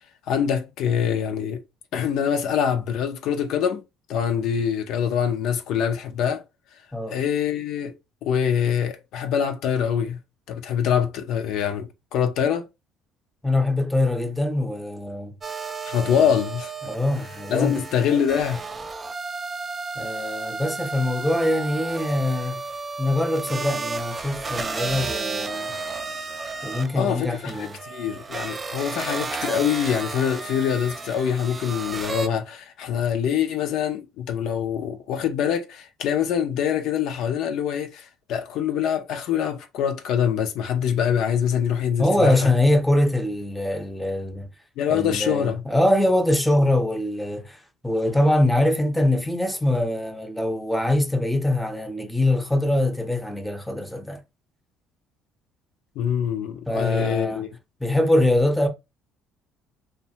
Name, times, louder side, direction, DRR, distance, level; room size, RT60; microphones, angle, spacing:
voice 1, 0.3-1.6 1.9-3.8 4.1-6.4 7.1-7.9 8.2-10.2 10.5-12.7 15.8-16.7 17.5-18.6 27.0-42.3 44.8-45.6 56.0-57.5, left 8 dB, 70° left, 0.5 m, -24 dB
voice 2, 13.4-15.3 16.1-16.3 16.8-17.8 20.0-22.6 23.0-25.7 26.6-27.7 42.0-44.5 44.9-47.6 47.8-54.2 56.7-57.4 57.8-58.7, left 1 dB, 5° left, 0.7 m, -23 dB
sound 1, 15.4-32.3, right 4 dB, 30° right, 0.4 m, -33 dB
2.5 x 2.2 x 2.7 m
supercardioid pair, 85°, 0 cm